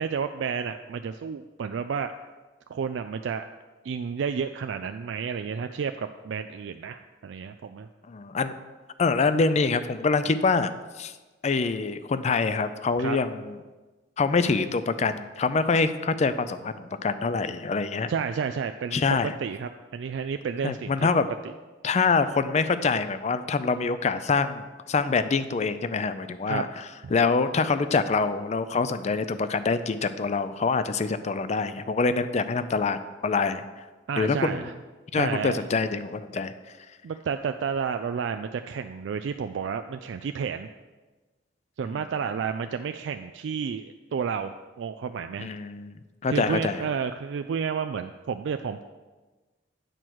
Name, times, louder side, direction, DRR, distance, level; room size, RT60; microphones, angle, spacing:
voice 1, 0.0-2.1 2.7-3.4 3.8-7.9 13.0-13.2 18.1-19.0 19.4-21.1 26.5-26.7 34.1-34.7 35.2-35.6 37.0-40.7 41.8-44.5 44.8-45.5 46.3-48.8, right 6 dB, 90° right, 8 dB, 0.3 m, -31 dB
voice 2, 8.1-8.5 9.0-10.7 11.0-11.1 11.4-13.6 14.2-18.1 18.9-19.3 20.6-21.3 21.8-33.6 34.2-34.7 35.1-36.5 45.4-45.9 46.2-46.9, left 4 dB, 40° left, 12 dB, 0.4 m, -25 dB
9.0 x 4.5 x 6.2 m, 1.3 s
head